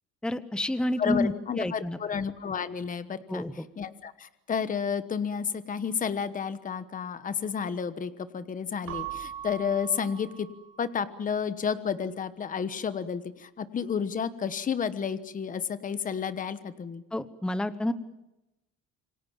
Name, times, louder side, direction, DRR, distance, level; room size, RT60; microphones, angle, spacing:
voice 1, 0.2-2.0 3.3-3.7 17.1-17.9, left 1 dB, 5° left, 13 dB, 0.9 m, -29 dB
voice 2, 1.0-3.5 3.8-10.5 10.8-17.0, left 7 dB, 25° left, 12 dB, 1.2 m, -31 dB
Keyboard (musical) / Bell, 8.9-11.3, right 11 dB, 50° right, 6.2 m, -41 dB
27.5 x 24.5 x 7.3 m, 0.94 s
cardioid pair, 170°, 32 cm